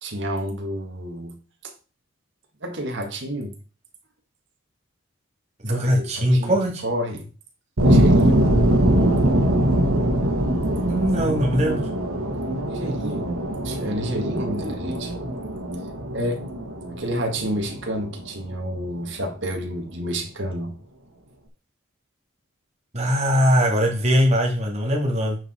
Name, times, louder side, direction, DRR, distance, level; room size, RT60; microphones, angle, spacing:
voice 1, 0.0-1.7 2.6-3.6 5.7-7.3 7.8-8.5 12.7-13.3 13.6-15.1 16.1-16.4 16.9-20.8, equal, 55° right, 1.9 m, -30 dB
voice 2, 5.6-6.8 10.9-11.9 22.9-25.4, equal, 30° right, 2.3 m, -21 dB
sound 1, 7.8-18.5, right 1 dB, 90° right, 1.5 m, -22 dB
8.8 x 4.8 x 4.4 m
head